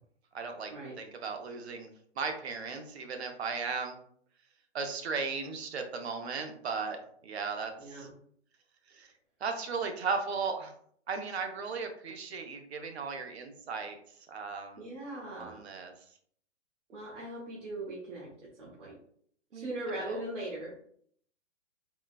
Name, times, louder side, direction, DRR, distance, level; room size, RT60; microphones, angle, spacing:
voice 1, 0.3-0.7 1.0-1.9 2.2-4.0 4.7-7.0 7.2-8.1 8.9-9.1 9.4-10.7 11.1-14.0 14.3-14.8 15.4-15.9 19.5-20.2, right 5 dB, 65° right, 6 dB, 0.6 m, -36 dB
voice 2, 7.8-8.1 14.8-15.6 16.9-18.3 18.6-18.9 19.5-20.7, right 1 dB, 85° right, -4 dB, 1.2 m, -39 dB
3.8 x 2.1 x 2.4 m, 0.62 s
hypercardioid pair, 180°, 36 cm